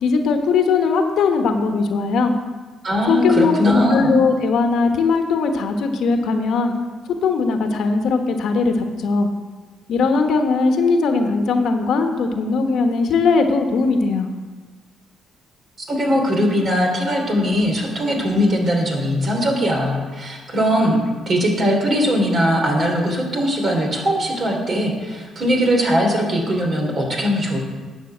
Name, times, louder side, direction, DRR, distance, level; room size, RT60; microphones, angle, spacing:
voice 1, 0.0-2.3 3.1-6.7 7.2-8.7 9.0-9.3 9.9-14.3, left 4 dB, 75° left, 5 dB, 1.2 m, -19 dB
voice 2, 2.8-4.1 15.8-21.0 21.3-27.6, equal, 45° right, 1 dB, 3.1 m, -20 dB
10.5 x 5.5 x 7.9 m, 1.4 s
cardioid pair, 90°, 0 cm